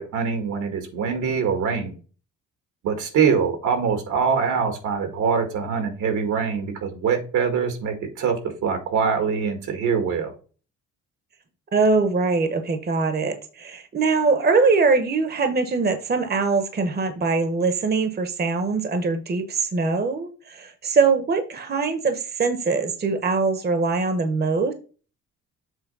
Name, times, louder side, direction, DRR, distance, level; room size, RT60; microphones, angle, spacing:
voice 1, 0.0-2.0 2.8-8.4 8.6-10.3, right 6 dB, 80° right, 6 dB, 1.9 m, -23 dB
voice 2, 11.7-24.7, right 4 dB, 35° right, 8 dB, 1.1 m, -22 dB
7.5 x 3.0 x 5.4 m, 0.36 s
cardioid pair, 90°, 30 cm